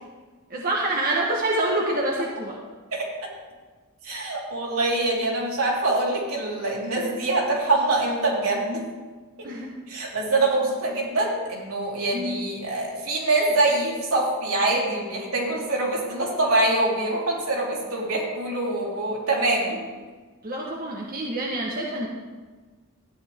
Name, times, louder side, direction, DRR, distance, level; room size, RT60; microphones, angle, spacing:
voice 1, 0.5-2.6 9.4-10.0 12.1-12.4 20.4-22.1, right 1 dB, 40° right, -2 dB, 1.2 m, -27 dB
voice 2, 2.9-3.3 4.0-8.8 9.9-19.8, right 2 dB, 80° right, -4 dB, 3.3 m, -24 dB
13.5 x 9.6 x 3.6 m, 1.4 s
head